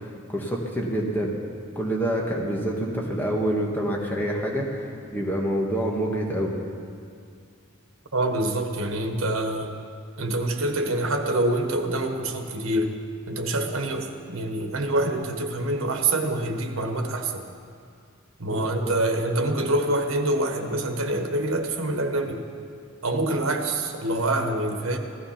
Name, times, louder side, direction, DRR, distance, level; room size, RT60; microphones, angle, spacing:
voice 1, 0.0-1.4 1.7-6.6, right 1 dB, 10° left, -2 dB, 1.6 m, -27 dB
voice 2, 8.1-9.8 10.2-12.9 13.3-17.5 18.4-22.4 23.0-25.0, right 1 dB, 80° right, 5 dB, 1.3 m, -26 dB
15.5 x 12.5 x 5.8 m, 2.3 s
head